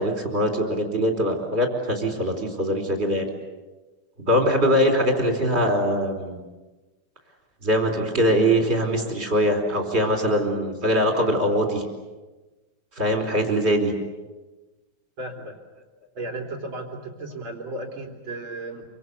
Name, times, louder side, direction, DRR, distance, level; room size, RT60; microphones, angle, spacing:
voice 1, 0.0-3.3 4.3-6.4 7.6-11.8 13.0-13.9, equal, 15° right, 3 dB, 4.1 m, -22 dB
voice 2, 15.2-15.5 16.1-18.8, right 2 dB, 30° right, 2 dB, 3.2 m, -34 dB
27.0 x 25.5 x 8.3 m, 1.2 s
omnidirectional pair, 5.1 m